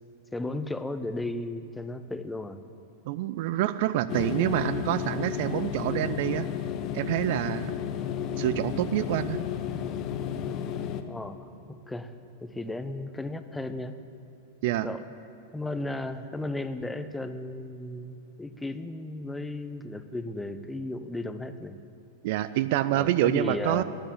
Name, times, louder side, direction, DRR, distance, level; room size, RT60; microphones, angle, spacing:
voice 1, 0.3-2.6 11.1-11.5 11.9-12.1 12.4-14.0 14.8-15.0 15.5-21.8 22.9-23.8, left 2 dB, 5° left, 10 dB, 0.7 m, -35 dB
voice 2, 3.1-6.5 6.9-7.7 8.4-9.4 14.6-14.9 22.2-23.8, right 13 dB, 50° right, 14 dB, 0.4 m, -27 dB
sound 1, 4.1-11.0, left 9 dB, 40° left, 0.8 m, -32 dB
12.5 x 10.5 x 8.2 m, 2.9 s
figure-of-eight pair, 95°, 0 cm